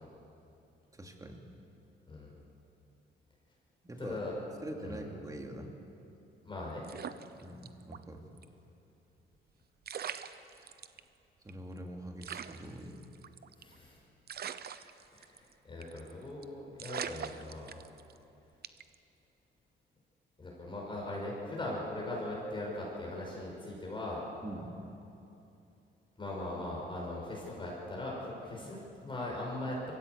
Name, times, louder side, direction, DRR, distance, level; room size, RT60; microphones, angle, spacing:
voice 1, 0.9-1.4 3.8-4.2 4.6-5.7 7.4-8.3 10.5-10.8 11.4-13.0 24.4-24.8 28.6-28.7, right 1 dB, 15° right, 3 dB, 2.7 m, -44 dB
voice 2, 4.0-4.3 4.8-5.0 6.4-6.8 13.6-14.0 15.1-17.7 20.4-24.2 26.2-29.8, left 2 dB, 25° left, -3 dB, 5.8 m, -40 dB
sound 1, 6.8-8.0 8.4-8.5 9.5-9.6 9.8-11.0 11.5-11.6 11.8-11.9 12.2-13.8 14.3-15.5 15.8-16.1 16.4-16.5 16.8-18.2 18.6-18.9, right 8 dB, 50° right, 0.9 m, -42 dB
23.5 x 15.0 x 8.3 m, 2.8 s
cardioid pair, 90°, 20 cm